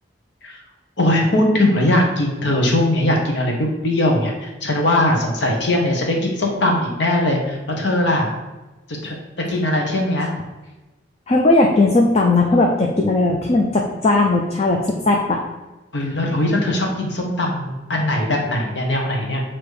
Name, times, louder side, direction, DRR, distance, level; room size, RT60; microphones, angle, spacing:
voice 1, 1.0-8.3 9.0-9.1 9.5-10.3 15.9-19.4, left 1 dB, 75° left, 0 dB, 1.1 m, -20 dB
voice 2, 11.3-15.4, left 2 dB, 35° left, 0 dB, 0.5 m, -17 dB
6.5 x 3.0 x 4.9 m, 1.1 s
head